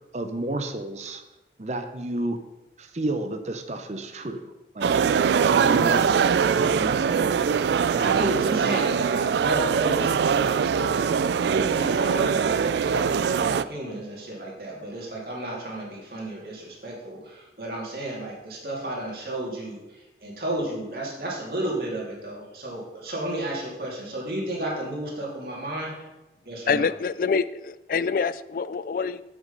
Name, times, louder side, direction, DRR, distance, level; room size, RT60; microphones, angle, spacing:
voice 1, 0.1-1.2 1.6-2.4 2.8-5.0 5.4-6.4 6.8-7.4 7.9-8.0, right 2 dB, 40° right, 7 dB, 0.7 m, -31 dB
sound 1, 4.8-13.6, right 6 dB, 75° right, 0.3 m, -22 dB
voice 2, 5.6-7.1 7.4-25.9 26.4-26.9, right 1 dB, 55° right, -3 dB, 2.6 m, -33 dB
voice 3, 26.7-29.2, left 5 dB, 50° left, 16 dB, 0.3 m, -26 dB
8.1 x 6.2 x 5.3 m, 1.0 s
head